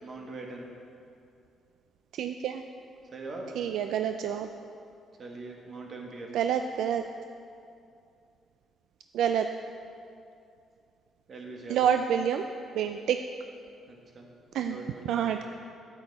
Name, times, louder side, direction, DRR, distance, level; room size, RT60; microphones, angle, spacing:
voice 1, 0.0-0.7 3.1-3.5 5.2-6.3 11.3-11.9 13.9-14.3 14.6-15.4, right 3 dB, 45° right, 0 dB, 1.5 m, -42 dB
voice 2, 2.1-2.6 3.6-4.5 6.3-7.0 9.1-9.5 11.7-12.5 12.7-13.2 14.5-14.8 15.1-15.4, right 9 dB, 80° right, 7 dB, 0.3 m, -27 dB
8.9 x 8.8 x 4.1 m, 2.5 s
cardioid pair, 90°, 0 cm